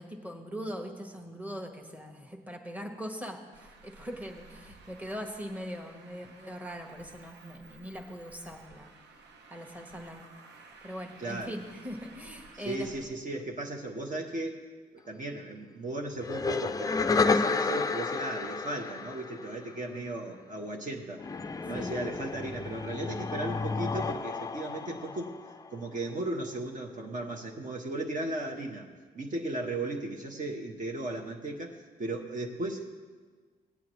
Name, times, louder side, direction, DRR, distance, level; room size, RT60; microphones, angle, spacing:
voice 1, 0.0-8.9 9.5-10.3 10.8-12.9 21.7-21.9, equal, 10° right, 3 dB, 1.3 m, -41 dB
Traffic noise roadway noise, 3.5-13.0, right 3 dB, 90° right, 0.8 m, -54 dB
voice 2, 11.2-11.6 12.5-14.6 14.9-21.2 21.7-25.3 25.7-28.9 29.1-32.9, right 2 dB, 50° right, 1 dB, 1.1 m, -36 dB
sound 1, 16.2-19.9 21.2-25.9, left 4 dB, 20° left, 0.4 m, -31 dB
17.5 x 8.4 x 3.1 m, 1.4 s
cardioid pair, 80°, 17 cm